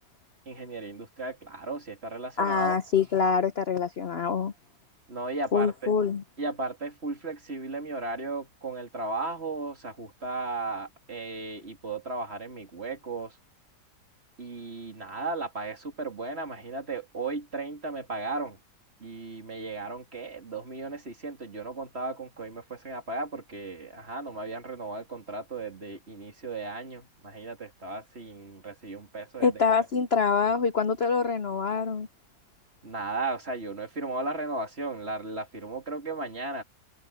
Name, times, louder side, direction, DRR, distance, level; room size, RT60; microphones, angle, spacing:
voice 1, 0.5-2.8 5.1-5.9 6.4-13.4 14.4-18.6 19.0-29.8 32.8-36.6, right 3 dB, 35° right, 3.1 m, -35 dB
voice 2, 2.4-4.5 5.5-6.2 29.4-32.1, left 5 dB, 45° left, 0.8 m, -25 dB
omnidirectional pair, 1.9 m